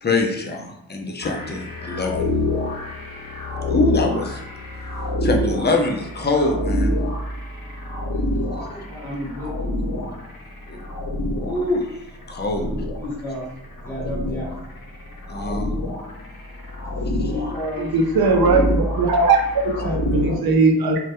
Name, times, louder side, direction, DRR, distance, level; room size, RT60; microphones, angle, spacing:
voice 1, 0.0-2.3 3.7-4.4 5.2-7.0 10.7-10.8 11.3-11.9 12.3-12.7 15.3-15.7 17.2-17.3, left 2 dB, 30° left, 1 dB, 0.4 m, -24 dB
sound 1, 1.2-20.4, left 1 dB, 70° left, 0.7 m, -27 dB
voice 2, 8.6-10.1 12.6-14.6 17.0-17.9 19.8-20.3, left 1 dB, 5° left, -6 dB, 0.9 m, -33 dB
voice 3, 17.8-21.0, right 3 dB, 90° right, 1 dB, 0.5 m, -19 dB
2.2 x 2.1 x 2.8 m, 0.79 s
wide cardioid pair, 80°, 36 cm